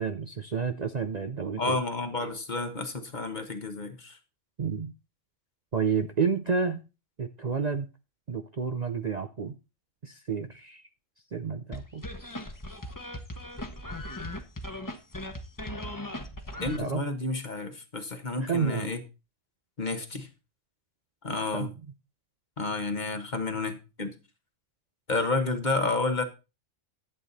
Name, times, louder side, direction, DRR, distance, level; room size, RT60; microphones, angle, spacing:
voice 1, 0.0-1.8 4.6-4.9 5.7-6.8 7.2-7.9 8.3-9.5 10.0-10.8 11.3-12.0 16.8-17.0 18.4-18.9 21.5-21.7, right 6 dB, 40° right, 0.7 m, -30 dB
voice 2, 1.6-4.2 16.6-19.0 19.8-20.3 21.2-21.7 22.6-24.1 25.1-26.2, left 3 dB, 40° left, 1.4 m, -30 dB
sound 1, 11.7-16.8, left 1 dB, 15° left, 1.2 m, -38 dB
11.0 x 8.4 x 4.1 m
omnidirectional pair, 1.3 m